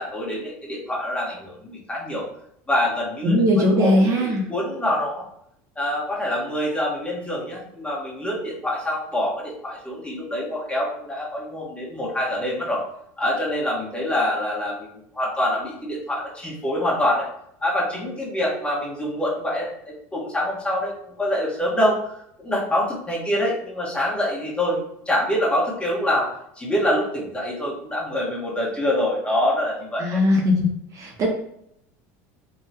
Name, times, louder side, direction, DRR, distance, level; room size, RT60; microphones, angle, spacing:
voice 1, 0.0-2.2 2.7-5.2 5.8-12.8 13.2-17.3 17.6-30.2, left 1 dB, 15° left, -4 dB, 1.2 m, -25 dB
voice 2, 3.2-4.5 30.0-30.7 30.9-31.3, left 1 dB, 40° right, 0 dB, 0.6 m, -19 dB
3.4 x 2.2 x 2.8 m, 0.73 s
supercardioid pair, 110°, 8 cm